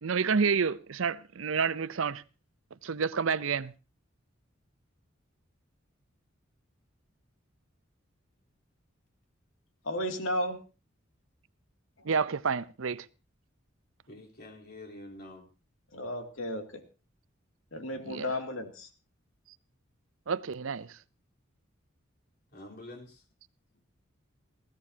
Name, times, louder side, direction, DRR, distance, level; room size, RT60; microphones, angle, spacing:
voice 1, 0.0-2.2 2.8-3.7 12.0-13.1 18.1-18.3 20.3-21.0, right 5 dB, 80° right, 0.6 m, -29 dB
voice 2, 9.8-10.6 15.9-16.8 17.7-18.9, left 1 dB, 80° left, 2.6 m, -33 dB
voice 3, 14.1-15.4 22.5-23.2, left 1 dB, 55° left, 3.8 m, -47 dB
21.0 x 15.5 x 2.8 m
head